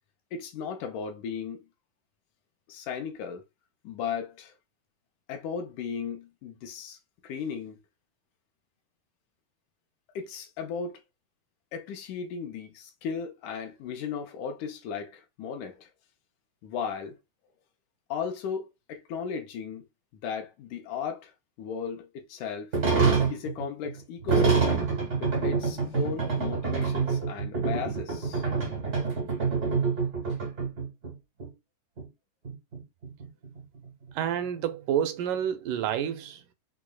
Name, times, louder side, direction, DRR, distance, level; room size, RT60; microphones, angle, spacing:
voice 1, 0.3-1.6 2.7-3.5 3.8-4.5 5.3-7.8 10.2-11.0 11.7-15.9 16.6-17.2 18.1-19.9 20.2-21.3 21.6-22.8 23.3-24.9 25.2-28.4, left 6 dB, 80° left, 1.9 m, -36 dB
sound 1, 22.7-31.1 31.4-31.5 32.0-32.1 32.4-34.1, right 5 dB, 65° right, 0.7 m, -27 dB
voice 2, 34.1-36.4, right 9 dB, 85° right, 2.1 m, -29 dB
6.1 x 2.1 x 2.2 m
omnidirectional pair, 3.7 m